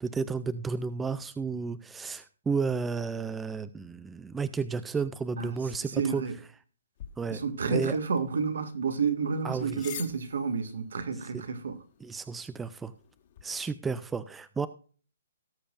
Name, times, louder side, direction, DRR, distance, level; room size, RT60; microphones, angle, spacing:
voice 1, 0.0-6.2 7.2-7.4 7.7-8.0 9.4-10.0 11.3-11.4 12.0-12.9 13.4-14.7, right 5 dB, 5° right, 0.3 m, -32 dB
voice 2, 5.9-6.3 7.3-11.8, right 5 dB, 70° right, 1.9 m, -30 dB
sound 1, 7.0-13.4, left 10 dB, 35° left, 1.7 m, -49 dB
18.0 x 6.8 x 2.5 m
hypercardioid pair, 170°, 0 cm